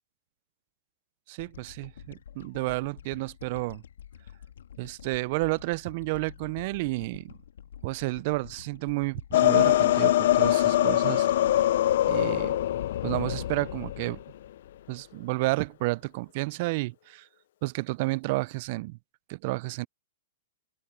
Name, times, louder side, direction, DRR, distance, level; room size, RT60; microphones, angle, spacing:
voice 1, 1.3-3.8 4.8-7.3 7.8-11.3 12.1-12.6 13.0-14.2 14.9-17.3 17.6-19.0 19.3-19.9, right 23 dB, 45° right, 0.3 m, -31 dB
sound 1, 1.4-13.9, left 9 dB, 85° left, 1.5 m, -49 dB
sound 2, 9.3-14.2, left 13 dB, 60° left, 0.4 m, -23 dB
open air
hypercardioid pair, 150°, 0 cm